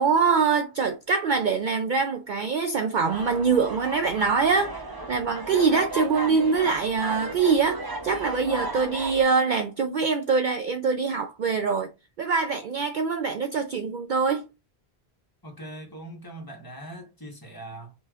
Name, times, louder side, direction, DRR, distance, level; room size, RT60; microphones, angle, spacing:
voice 1, 0.0-4.8 5.1-11.9 12.2-14.5, right 5 dB, 60° right, 0.6 m, -24 dB
sound 1, 3.1-9.2, right 1 dB, 25° right, 0.8 m, -35 dB
voice 2, 15.4-17.9, right 1 dB, 20° left, 1.3 m, -41 dB
5.5 x 3.1 x 2.4 m
omnidirectional pair, 1.1 m